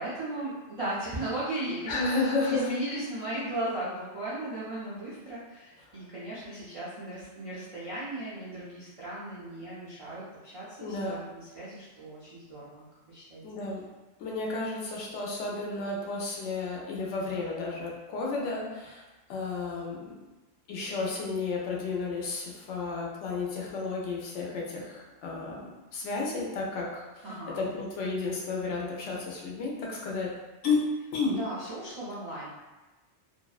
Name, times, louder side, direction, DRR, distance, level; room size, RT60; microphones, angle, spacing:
voice 1, 0.0-13.6 27.2-27.7 31.3-32.6, right 1 dB, 60° right, -10 dB, 0.3 m, -37 dB
voice 2, 1.9-2.7 10.8-11.2 13.4-13.8 14.2-19.0 19.3-20.1 20.7-27.2 27.6-30.3 30.6-31.4, left 3 dB, 85° left, -3 dB, 0.9 m, -32 dB
2.6 x 2.1 x 2.3 m, 1.1 s
omnidirectional pair, 1.2 m